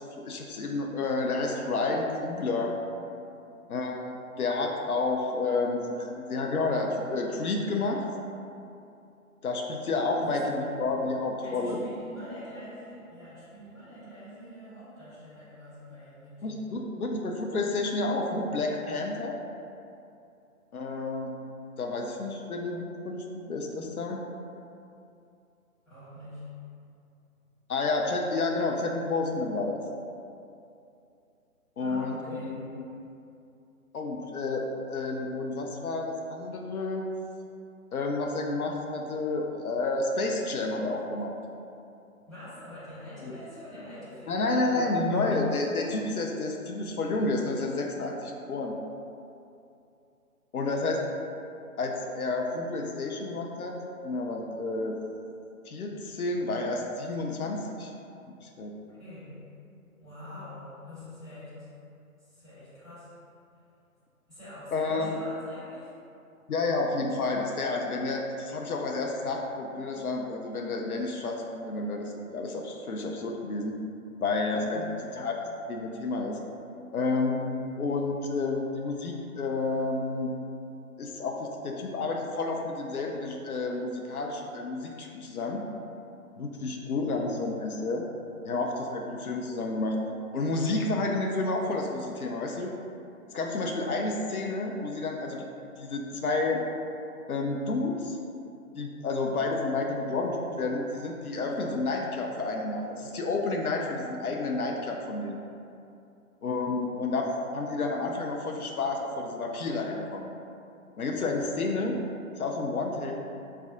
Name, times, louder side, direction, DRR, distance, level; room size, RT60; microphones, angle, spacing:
voice 1, 0.0-2.7 3.7-8.0 9.4-11.8 16.4-19.4 20.7-21.3 21.8-24.2 27.7-29.8 31.8-32.8 33.9-37.1 37.9-41.3 43.2-43.3 44.3-48.7 50.5-51.0 51.8-53.7 54.0-55.0 55.7-57.9 58.4-58.7 64.7-65.2 66.5-73.8 74.2-74.8 75.2-75.4 75.7-76.4 76.9-77.5 77.8-80.3 81.0-85.6 86.4-88.0 88.4-90.0 90.3-92.7 93.3-95.5 95.8-96.6 97.3-98.2 98.7-105.4 106.4-110.3 111.0-112.0 112.4-113.2, left 3 dB, 75° left, 1 dB, 0.5 m, -30 dB
voice 2, 10.1-10.8 11.4-16.6 25.8-26.7 31.8-33.1 42.2-45.3 58.8-59.5 60.0-61.8 62.2-63.2 63.5-63.6 64.3-66.0 74.7-75.0, left 1 dB, ahead, -18 dB, 1.3 m, -45 dB
3.2 x 2.3 x 3.8 m, 2.6 s
figure-of-eight pair, 135°, 44 cm